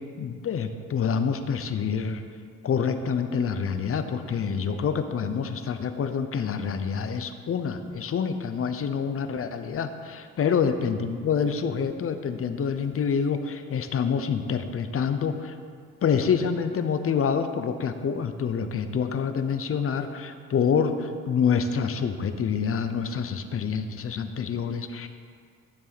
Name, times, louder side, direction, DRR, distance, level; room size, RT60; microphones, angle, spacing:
voice 1, 0.2-2.2 2.6-15.6 16.0-25.1, left 6 dB, 45° left, 9 dB, 0.8 m, -27 dB
12.5 x 7.2 x 4.1 m, 2.1 s
cardioid pair, 90°, 30 cm